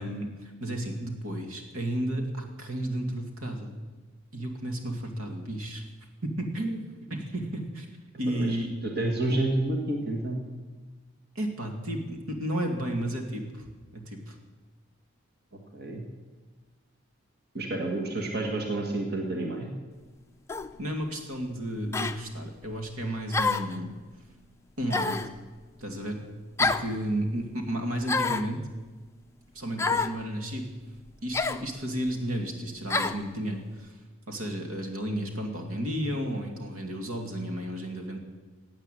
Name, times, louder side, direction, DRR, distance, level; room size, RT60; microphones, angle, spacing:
voice 1, 0.0-3.7 4.3-5.8 6.2-6.8 7.1-7.9 8.2-8.8 9.3-9.4 11.3-14.4 20.8-23.9 24.8-25.2 25.8-26.2 26.6-28.7 29.5-30.7 31.2-34.0 34.3-38.2, right 1 dB, 75° right, 3 dB, 2.4 m, -32 dB
voice 2, 8.3-8.6 8.8-10.4 15.7-16.0 17.5-19.7, right 2 dB, 45° right, 1 dB, 1.8 m, -29 dB
sound 1, 20.5-20.7 21.9-22.2 23.3-23.8 24.9-25.3 26.6-26.9 28.0-28.5 29.8-30.2 31.3-31.6 32.9-33.2, left 4 dB, 10° left, 0.5 m, -27 dB
16.5 x 8.8 x 9.2 m, 1.3 s
head